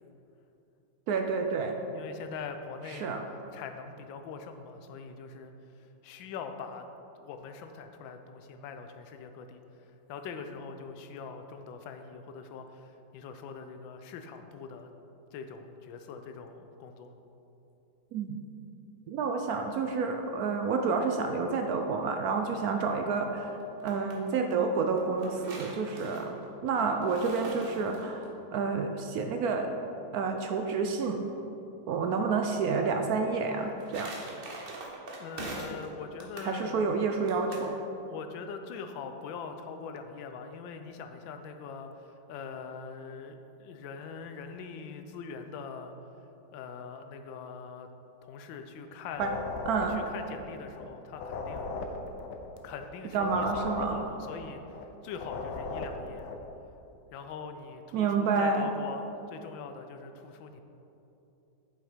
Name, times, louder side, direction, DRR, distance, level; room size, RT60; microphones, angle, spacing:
voice 1, 1.1-1.7 2.9-3.2 18.1-18.4 19.1-23.5 23.8-26.4 26.6-29.7 30.1-31.2 31.9-34.1 36.4-37.8 49.2-49.3 49.7-50.0 53.1-54.0 57.9-58.7, right 4 dB, 75° right, 4 dB, 0.9 m, -29 dB
voice 2, 1.9-3.2 3.5-6.9 7.2-14.9 15.3-17.1 35.2-36.9 38.1-45.9 46.5-47.9 48.2-49.4 49.9-51.7 52.6-54.6 55.0-56.3 57.1-60.6, left 5 dB, 90° left, 7 dB, 1.4 m, -43 dB
sound 1, 23.6-24.2 25.0-28.3 33.4-35.9 36.2-36.5 37.3-37.7, right 2 dB, 40° right, 1.0 m, -43 dB
sound 2, 49.1-50.8 51.1-54.8 55.1-56.5, left 3 dB, 70° left, 1.3 m, -38 dB
8.0 x 5.7 x 4.9 m, 2.9 s
omnidirectional pair, 2.0 m